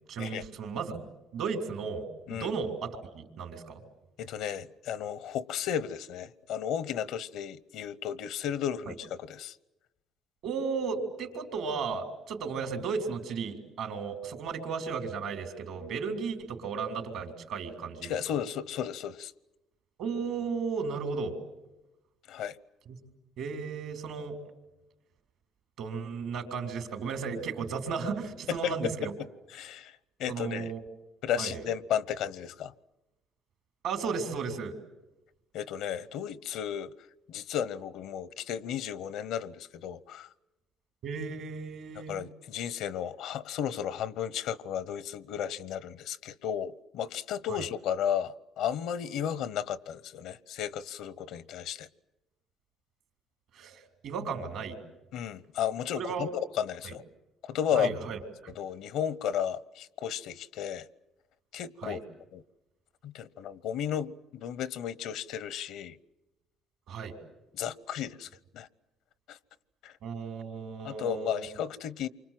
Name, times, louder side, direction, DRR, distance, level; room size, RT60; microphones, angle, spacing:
voice 1, 0.1-1.1 1.3-3.8 8.9-9.0 10.4-18.1 20.0-21.4 22.9-23.0 23.4-24.4 25.8-29.1 30.3-30.8 31.4-31.6 33.8-34.8 41.0-42.2 47.5-47.7 53.5-54.8 56.0-56.3 56.8-56.9 57.7-58.5 61.8-62.0 66.9-67.2 70.0-71.4, right 5 dB, 75° right, 4.0 m, -35 dB
voice 2, 4.2-9.5 18.0-19.3 22.3-22.6 28.5-28.7 29.5-30.7 31.2-32.7 35.5-36.9 37.3-40.3 42.1-51.9 55.1-56.3 56.5-57.0 57.4-57.9 58.6-60.9 61.5-62.0 62.3-62.4 63.0-66.0 67.5-68.3 68.5-68.7 69.3-69.4 69.8-70.0 70.8-72.1, left 9 dB, 80° left, 0.9 m, -34 dB
28.0 x 25.0 x 7.7 m
supercardioid pair, 85°, 0 cm